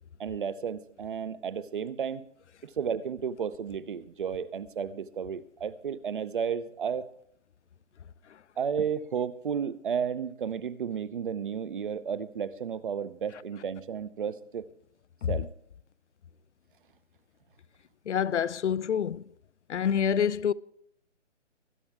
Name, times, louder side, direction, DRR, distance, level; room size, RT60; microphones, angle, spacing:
voice 1, 0.2-2.2 2.6-7.1 8.6-14.7 15.3-15.5, right 7 dB, 45° right, 0.7 m, -33 dB
voice 2, 18.1-19.2 19.7-20.5, left 8 dB, 65° left, 0.6 m, -27 dB
21.0 x 9.8 x 3.5 m
hypercardioid pair, 160°, 37 cm